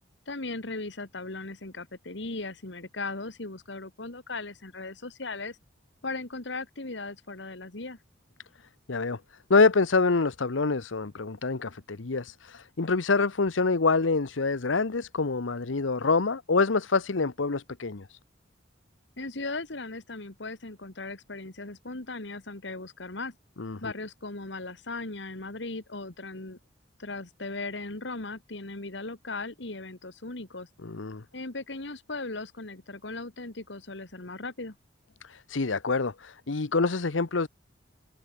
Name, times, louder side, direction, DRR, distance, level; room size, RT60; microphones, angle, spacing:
voice 1, 0.3-5.6 6.0-8.0 19.2-23.3 23.8-26.6 27.0-30.7 31.3-34.8, left 3 dB, 70° left, 2.0 m, -37 dB
voice 2, 8.9-9.2 9.5-18.2 23.6-23.9 30.8-31.2 35.2-37.5, left 4 dB, 90° left, 0.9 m, -26 dB
head